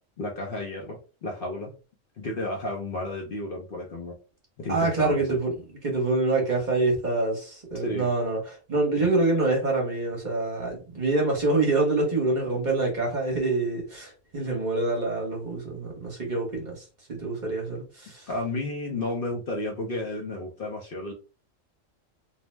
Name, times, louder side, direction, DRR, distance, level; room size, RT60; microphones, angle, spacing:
voice 1, 0.2-1.7 2.2-4.1 4.6-5.4 7.7-8.1 9.0-9.1 18.3-21.1, left 2 dB, 55° left, 0.7 m, -32 dB
voice 2, 4.7-5.5 5.8-16.8 17.1-18.3, right 2 dB, 40° right, 0.9 m, -26 dB
2.7 x 2.0 x 3.2 m
omnidirectional pair, 1.3 m